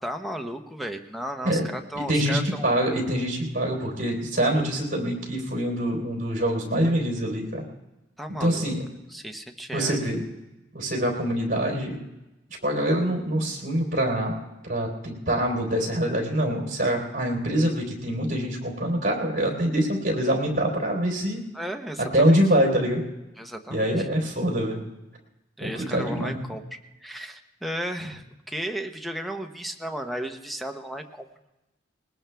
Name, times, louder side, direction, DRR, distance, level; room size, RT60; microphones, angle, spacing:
voice 1, 0.0-2.7 8.2-8.7 9.1-10.0 21.5-22.4 23.4-24.1 25.6-26.6 27.0-31.3, equal, ahead, 5 dB, 0.9 m, -34 dB
voice 2, 2.1-7.6 8.4-8.9 9.7-10.2 10.7-12.0 12.6-14.4 14.7-21.4 22.1-23.0 23.7-24.8 25.6-26.4, right 1 dB, 50° right, -1 dB, 3.8 m, -25 dB
20.0 x 20.0 x 3.5 m, 1.0 s
head